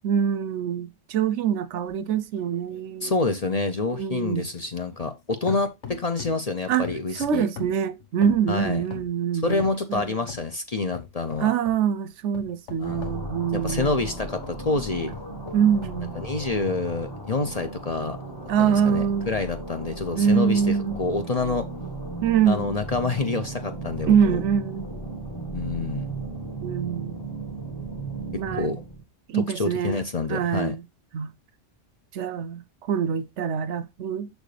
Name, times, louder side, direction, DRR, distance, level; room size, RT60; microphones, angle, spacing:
voice 1, 0.0-3.2 3.9-4.5 6.7-6.9 7.1-10.2 11.4-14.0 15.5-16.1 18.5-19.3 20.1-21.0 22.2-22.8 24.1-25.1 26.6-27.2 28.4-28.7 29.3-30.0 30.3-30.8 31.1-31.3 32.1-34.3, right 8 dB, 70° right, 0.9 m, -24 dB
sound 1, 1.9-5.2 5.5-6.5 6.8-9.2 9.6-10.5 10.9-11.8 12.3-14.6 15.1-16.0 16.6-16.7, left 7 dB, 65° left, 1.5 m, -42 dB
voice 2, 3.0-7.5 8.5-8.8 9.4-11.5 12.8-13.1 13.5-15.1 16.1-18.2 18.6-20.6 21.0-21.7 22.5-24.4 25.5-26.1 28.3-28.8 29.3-30.7, left 3 dB, 40° left, 0.7 m, -27 dB
sound 2, 12.8-29.0, right 2 dB, 20° left, 1.3 m, -36 dB
6.6 x 6.3 x 3.3 m
omnidirectional pair, 1.3 m